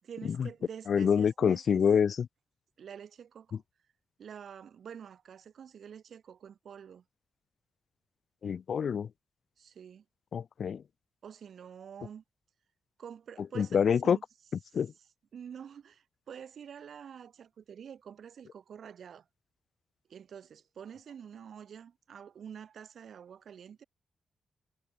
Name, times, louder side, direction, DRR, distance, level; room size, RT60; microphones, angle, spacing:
voice 1, 0.0-1.8 2.8-3.6 4.2-7.0 9.6-10.0 11.2-12.2 13.0-14.2 15.3-19.3 20.1-23.8, right 8 dB, 70° right, 4.3 m, -47 dB
voice 2, 0.9-2.3 8.4-9.1 10.3-10.8 13.5-14.2 14.7-14.9, left 7 dB, 65° left, 0.5 m, -26 dB
cardioid pair, 90°, 0 cm